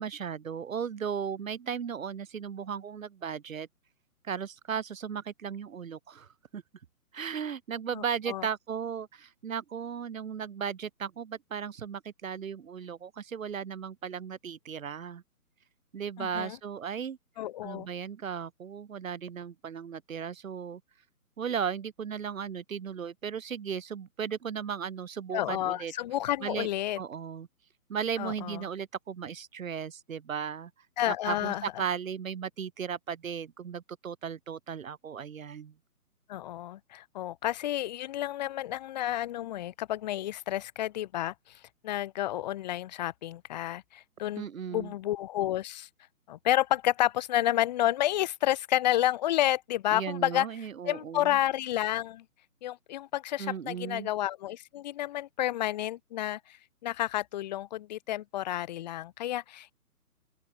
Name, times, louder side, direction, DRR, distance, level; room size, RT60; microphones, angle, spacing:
voice 1, 0.0-3.7 4.2-6.6 7.1-15.2 15.9-17.2 17.6-20.8 21.4-25.9 26.4-26.7 27.0-27.5 27.9-30.7 31.0-35.7 44.4-44.9 49.9-51.4 53.4-54.1, right 7 dB, 60° right, 1.5 m, -36 dB
voice 2, 7.9-8.5 16.2-16.6 17.4-17.9 25.3-27.0 28.2-28.6 31.0-31.6 36.3-41.3 41.8-44.4 44.7-45.9 46.3-50.5 50.8-52.2 52.6-56.6 56.8-59.7, left 13 dB, 30° left, 1.5 m, -30 dB
open air
figure-of-eight pair, 140°, 46 cm